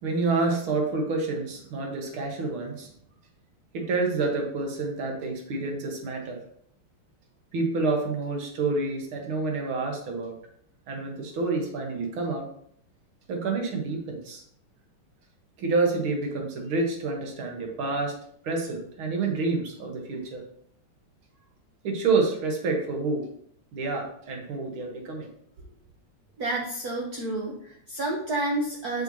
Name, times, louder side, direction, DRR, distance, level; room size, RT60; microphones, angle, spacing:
voice 1, 0.0-2.9 3.7-6.4 7.5-10.4 10.9-12.5 13.3-14.4 15.6-18.2 18.4-20.4 21.8-23.3 23.7-25.3, right 3 dB, 70° right, 2 dB, 2.1 m, -28 dB
voice 2, 26.4-29.0, right 2 dB, 55° right, -1 dB, 1.2 m, -30 dB
7.8 x 5.7 x 2.8 m, 0.65 s
omnidirectional pair, 2.4 m